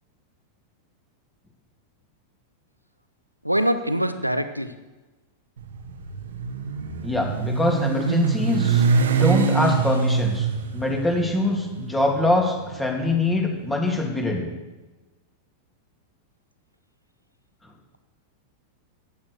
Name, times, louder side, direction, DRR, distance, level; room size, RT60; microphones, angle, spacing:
voice 1, 3.4-4.7, equal, 90° right, 11 dB, 0.9 m, -23 dB
Motorcycle, 5.6-13.8, right 5 dB, 65° right, 1.5 m, -24 dB
voice 2, 7.0-8.8 9.1-10.5 10.7-14.5, left 2 dB, 10° left, 1 dB, 2.9 m, -23 dB
14.0 x 10.0 x 6.9 m, 1.2 s
figure-of-eight pair, 90°, 0 cm